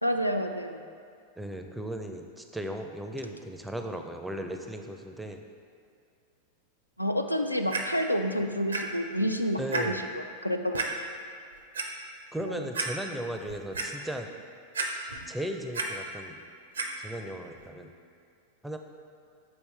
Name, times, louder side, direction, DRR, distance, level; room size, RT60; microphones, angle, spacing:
voice 1, 0.0-0.8 7.0-10.9 12.4-12.7, equal, 85° left, 6 dB, 0.3 m, -29 dB
voice 2, 1.4-5.4 9.6-10.0 12.3-14.3 15.3-16.4 17.0-17.9 18.6-18.8, right 1 dB, 5° right, 4 dB, 0.4 m, -36 dB
Clock, 7.7-7.8 8.7-8.8 9.2-9.3 9.7-9.8 10.7-10.9 11.5-11.9 12.4-12.5 12.7-12.9 13.3-13.9 14.7-15.3 15.5-15.9 16.7-16.9 17.6-17.7, right 4 dB, 70° right, 0.5 m, -31 dB
6.8 x 4.2 x 3.3 m, 2.4 s
figure-of-eight pair, 90°, 0 cm